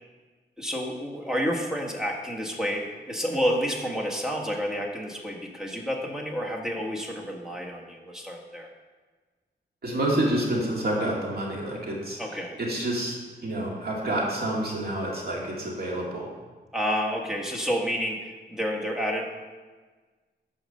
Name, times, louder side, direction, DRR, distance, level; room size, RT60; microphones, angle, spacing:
voice 1, 0.6-8.7 12.2-12.6 16.7-19.3, equal, 5° right, -1 dB, 1.3 m, -29 dB
voice 2, 9.8-12.2 12.6-16.3, right 1 dB, 55° right, -3 dB, 2.2 m, -28 dB
9.1 x 4.9 x 6.5 m, 1.4 s
wide cardioid pair, 135°, 19 cm